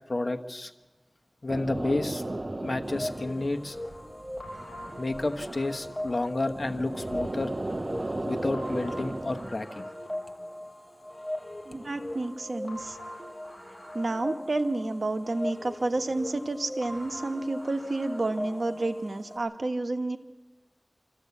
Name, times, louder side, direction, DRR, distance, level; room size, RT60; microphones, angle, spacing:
voice 1, 0.1-0.7 1.4-2.2 2.6-3.8 5.0-7.5 8.2-9.9, left 2 dB, 60° left, 6 dB, 1.2 m, -30 dB
sound 1, 1.5-9.7, right 2 dB, 45° right, 0.9 m, -36 dB
sound 2, 2.8-19.4, left 1 dB, 15° left, 6.9 m, -40 dB
voice 2, 11.7-13.0 13.9-20.2, right 2 dB, 70° right, 7 dB, 1.2 m, -30 dB
26.5 x 14.0 x 8.4 m, 1.3 s
wide cardioid pair, 45°, 0 cm